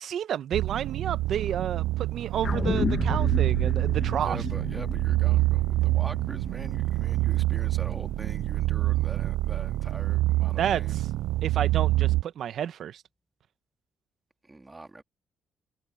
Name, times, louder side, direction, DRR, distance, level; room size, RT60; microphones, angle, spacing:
voice 1, 0.0-4.4 10.6-10.8 11.4-13.0, right 9 dB, 70° right, 1.0 m, -30 dB
sound 1, 0.5-12.2, right 16 dB, 90° right, 0.3 m, -26 dB
sound 2, 2.4-7.0 7.4-7.5, left 6 dB, 50° left, 1.4 m, -35 dB
sound 3, 2.4-10.3 10.7-10.8, left 1 dB, 10° left, 1.1 m, -38 dB
voice 2, 4.2-11.0 14.4-15.0, right 2 dB, 20° right, 2.5 m, -43 dB
cardioid pair, 90°, 0 cm